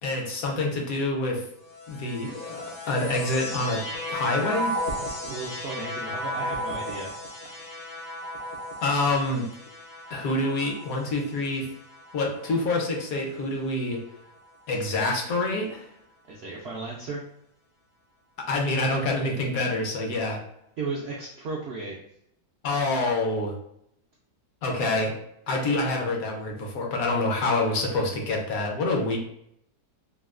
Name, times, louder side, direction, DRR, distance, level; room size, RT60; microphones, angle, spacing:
voice 1, 0.0-1.4 1.9-4.8 8.8-9.5 10.1-11.7 12.1-14.0 14.7-15.9 18.4-20.4 22.6-23.5 24.6-25.1 25.5-29.2, left 2 dB, 70° left, 1 dB, 1.1 m, -27 dB
sound 1, 1.7-13.2 13.9-14.7, equal, 50° left, 0.7 m, -35 dB
voice 2, 5.0-7.1 16.3-17.2 20.8-22.0, right 3 dB, 80° right, -4 dB, 0.5 m, -35 dB
3.6 x 2.3 x 2.3 m, 0.73 s
omnidirectional pair, 1.7 m